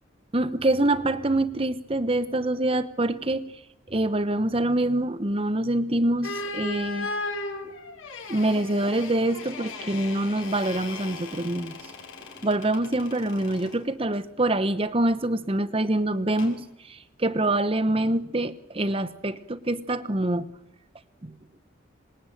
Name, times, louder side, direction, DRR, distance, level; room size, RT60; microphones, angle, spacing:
voice 1, 0.3-3.4 3.9-7.1 8.3-11.8 12.4-20.5 21.2-21.3, right 1 dB, 25° right, 12 dB, 0.9 m, -25 dB
sound 1, 6.2-13.8 16.4-16.6, left 3 dB, 85° left, 6.2 m, -37 dB
26.0 x 20.5 x 9.1 m, 0.95 s
head